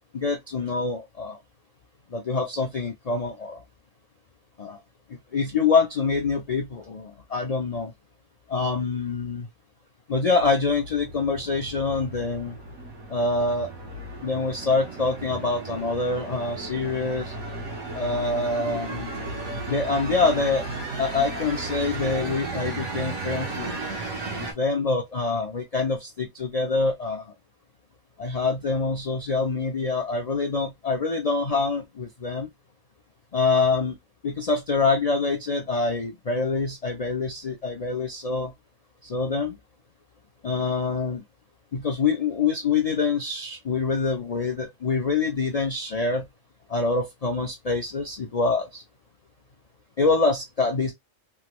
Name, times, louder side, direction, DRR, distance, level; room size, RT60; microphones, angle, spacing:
voice 1, 0.1-1.4 2.1-3.6 4.6-4.8 5.3-7.9 8.5-9.5 10.1-12.5 13.1-13.7 14.2-17.3 17.9-19.1 19.7-20.6 21.0-23.8 24.4-27.3 28.2-32.5 33.3-34.0 34.2-38.5 39.0-39.6 40.4-41.2 41.7-46.2 46.7-48.8 50.0-50.9, left 4 dB, 50° left, 0.4 m, -25 dB
sound 1, 10.4-24.5, right 3 dB, 75° right, 1.4 m, -35 dB
3.4 x 2.2 x 3.0 m
omnidirectional pair, 1.4 m